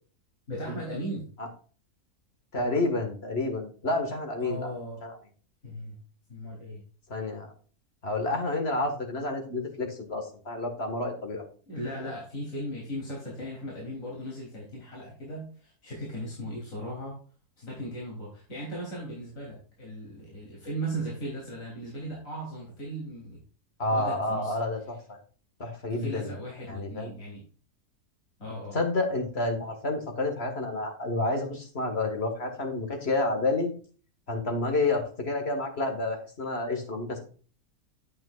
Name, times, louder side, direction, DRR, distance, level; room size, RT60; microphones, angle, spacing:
voice 1, 0.5-1.3 4.4-5.0 5.6-6.0 6.3-6.8 11.7-17.2 17.6-23.4 23.9-24.6 25.9-27.4 28.4-28.8, right 1 dB, 60° left, -4 dB, 3.7 m, -37 dB
voice 2, 2.5-4.7 5.0-5.2 7.1-7.5 8.0-11.4 23.8-25.0 25.6-26.3 26.7-27.1 28.7-33.7 34.3-37.3, left 2 dB, 40° left, 4 dB, 2.0 m, -29 dB
9.1 x 8.6 x 2.4 m, 0.40 s
omnidirectional pair, 1.6 m